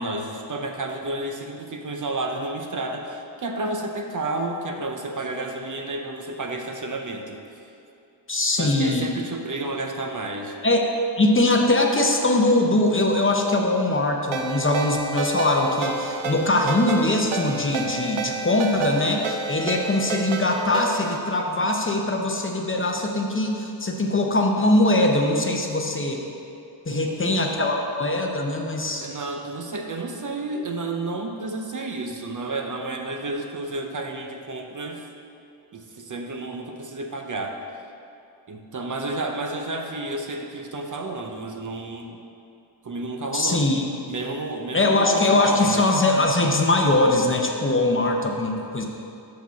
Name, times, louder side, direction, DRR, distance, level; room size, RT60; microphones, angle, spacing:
voice 1, 0.0-7.4 8.6-10.6 26.9-27.7 29.0-35.1 35.7-37.6 38.5-42.2 42.8-43.6 44.1-45.9, right 2 dB, 40° right, 3 dB, 0.7 m, -31 dB
voice 2, 8.3-9.1 10.6-10.9 11.2-26.2 26.9-29.1 43.3-43.8 44.7-48.9, left 2 dB, 25° left, 1 dB, 0.8 m, -22 dB
Ringtone, 14.3-21.2, right 4 dB, 80° right, 0.7 m, -30 dB
6.1 x 5.0 x 6.8 m, 2.7 s
cardioid pair, 85°, 47 cm